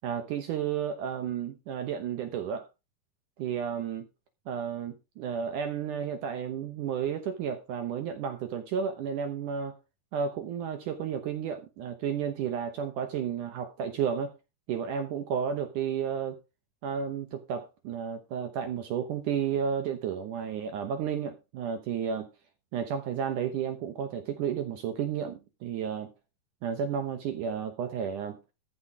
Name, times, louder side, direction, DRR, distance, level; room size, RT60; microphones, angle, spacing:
voice 1, 0.0-2.7 3.4-4.1 4.5-9.8 10.1-14.3 14.7-16.4 16.8-22.3 22.7-26.1 26.6-28.4, right 7 dB, 70° right, 2.3 m, -32 dB
14.5 x 5.8 x 4.9 m
omnidirectional pair, 4.3 m